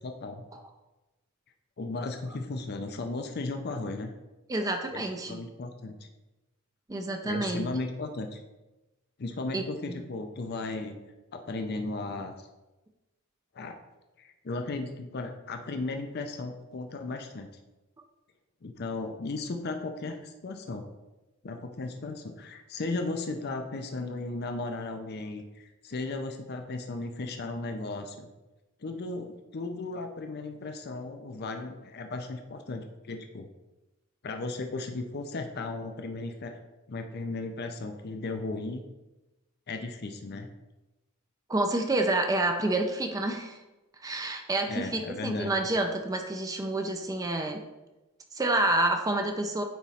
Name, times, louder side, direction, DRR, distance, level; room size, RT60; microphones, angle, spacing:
voice 1, 0.0-0.4 1.8-4.1 4.9-6.0 7.2-8.4 9.2-11.0 11.3-12.5 13.5-13.8 14.2-17.5 18.6-20.8 21.4-28.3 28.8-33.5 34.2-36.6 36.9-38.8 39.7-40.5 44.7-45.5, left 3 dB, 50° left, 5 dB, 0.5 m, -35 dB
voice 2, 4.5-5.4 6.9-7.7 9.5-10.0 41.5-43.6 44.0-47.6 48.3-49.6, right 2 dB, 15° right, 4 dB, 0.4 m, -28 dB
9.1 x 3.1 x 4.2 m, 1.1 s
head